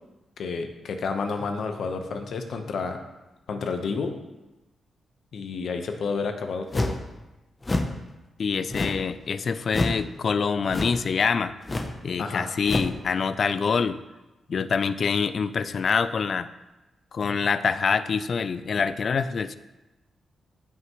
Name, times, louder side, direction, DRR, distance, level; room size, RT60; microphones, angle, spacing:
voice 1, 0.4-3.0 3.5-4.2 5.3-6.9 12.2-12.5, left 4 dB, 65° left, 5 dB, 1.0 m, -30 dB
sound 1, 6.7-7.1 7.6-8.0 8.7-9.1 9.7-10.0 10.7-11.1 11.6-12.0 12.6-13.0, left 2 dB, 20° left, 0.7 m, -27 dB
voice 2, 8.4-11.5 12.0-14.0 14.5-16.5 17.1-19.5, left 5 dB, 45° left, 13 dB, 0.4 m, -25 dB
15.0 x 5.8 x 3.1 m, 1.1 s
wide cardioid pair, 140°, 0 cm